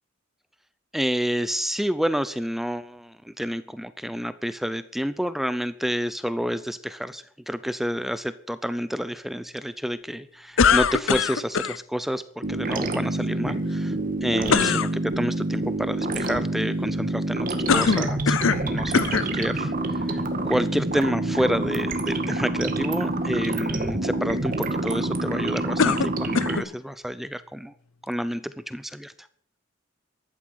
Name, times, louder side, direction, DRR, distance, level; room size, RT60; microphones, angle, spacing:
voice 1, 0.9-27.7 28.1-29.3, equal, ahead, 14 dB, 0.5 m, -29 dB
sound 1, 10.6-11.8 14.5-14.9 17.7-18.7 18.9-19.3 20.1-20.2 25.8-26.7, left 6 dB, 85° left, 0.6 m, -22 dB
sound 2, 12.4-26.6, right 2 dB, 45° right, 2.0 m, -27 dB
15.0 x 11.5 x 6.3 m, 0.63 s
head